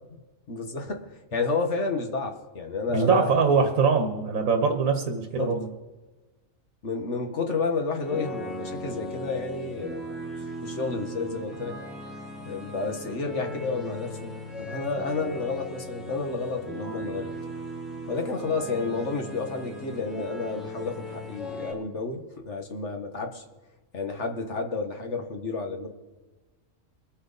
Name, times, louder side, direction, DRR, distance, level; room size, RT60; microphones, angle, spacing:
voice 1, 0.5-3.9 5.4-5.6 6.8-10.0 10.6-11.8 12.4-17.3 18.1-23.4 23.9-25.9, left 4 dB, 60° left, 5 dB, 1.7 m, -31 dB
voice 2, 2.9-5.6, right 5 dB, 90° right, 5 dB, 1.5 m, -23 dB
sound 1, 8.0-21.7, equal, ahead, 3.3 m, -38 dB
23.0 x 8.7 x 4.1 m, 1.2 s
omnidirectional pair, 1.4 m